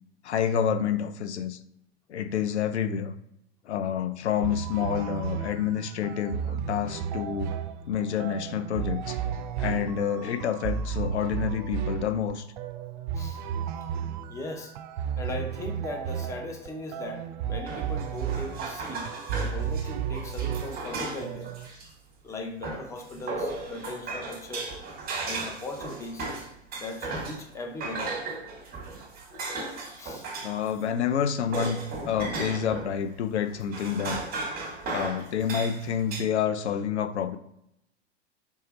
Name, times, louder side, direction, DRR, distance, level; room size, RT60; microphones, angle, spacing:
voice 1, 0.2-1.6 2.1-3.2 3.7-7.5 7.9-9.2 9.6-12.5 30.4-34.2 34.9-37.4, left 8 dB, 70° left, 10 dB, 0.5 m, -28 dB
sound 1, 4.4-21.7, right 8 dB, 45° right, 0.4 m, -33 dB
voice 2, 14.3-14.7 15.2-19.1 19.4-21.5 22.2-24.7 25.2-26.2 26.8-28.1 30.0-30.3, left 2 dB, 10° left, 3 dB, 0.6 m, -38 dB
sound 2, 17.7-21.9 22.6-27.5 27.8-30.7 31.0-32.9 33.4-36.2, right 3 dB, 25° right, 1.4 m, -36 dB
3.4 x 3.2 x 4.1 m, 0.78 s
figure-of-eight pair, 95°, 35 cm